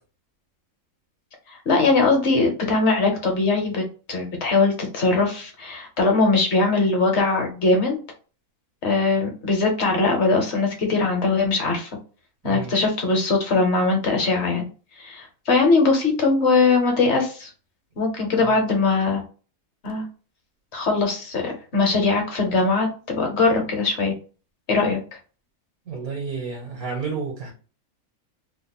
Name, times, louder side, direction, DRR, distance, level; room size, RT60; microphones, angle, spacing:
voice 1, 1.5-3.8 4.1-8.0 8.8-11.9 12.4-14.6 15.0-17.5 18.0-19.2 19.8-20.0 20.7-24.1 24.7-25.0, left 3 dB, 55° left, 1.1 m, -21 dB
voice 2, 12.4-12.8 18.4-18.6 25.9-27.5, right 5 dB, 75° right, 1.4 m, -31 dB
3.1 x 2.0 x 4.1 m
omnidirectional pair, 1.5 m